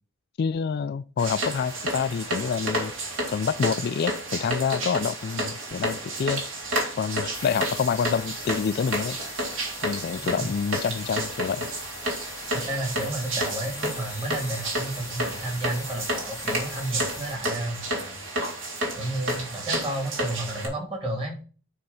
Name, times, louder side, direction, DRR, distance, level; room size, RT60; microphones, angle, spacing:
voice 1, 0.4-2.9 3.3-6.4 7.0-9.2 9.8-11.7, left 6 dB, 50° left, 0.3 m, -27 dB
sound 1, 1.2-20.7, right 1 dB, 65° right, 2.6 m, -31 dB
sound 2, 7.3-17.4, left 4 dB, 15° left, 1.0 m, -42 dB
voice 2, 10.1-10.5 12.5-18.2 18.9-21.4, right 1 dB, 25° right, 2.5 m, -32 dB
9.3 x 3.3 x 5.6 m
head